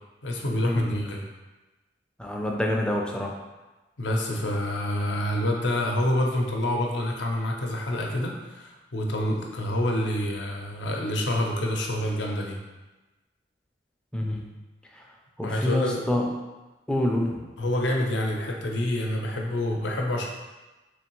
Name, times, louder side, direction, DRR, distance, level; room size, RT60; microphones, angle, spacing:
voice 1, 0.2-1.2 4.0-12.6 15.4-16.0 17.6-20.3, left 1 dB, 70° left, 0 dB, 0.6 m, -27 dB
voice 2, 2.2-3.4 14.1-14.5 14.9-15.0 15.4-16.3 16.9-17.4, left 1 dB, 5° left, 0 dB, 0.3 m, -27 dB
3.5 x 3.3 x 3.0 m, 1.1 s
head